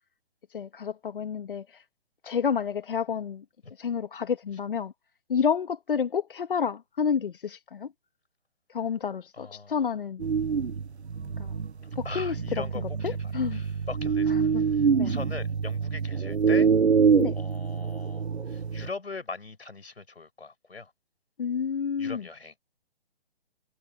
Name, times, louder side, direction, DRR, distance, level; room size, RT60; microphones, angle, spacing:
voice 1, 0.5-1.8 2.2-3.4 3.7-4.9 5.3-7.9 8.7-10.3 11.2-11.6 11.9-13.6 14.3-14.7 15.0-15.2 17.2-17.3 21.4-22.3, left 7 dB, 55° left, 1.2 m, -30 dB
voice 2, 9.4-9.7 12.0-16.7 17.3-20.9 22.0-22.5, left 4 dB, 75° left, 5.0 m, -40 dB
sound 1, 10.2-18.9, right 6 dB, 85° right, 0.9 m, -26 dB
figure-of-eight pair, 140°, 32 cm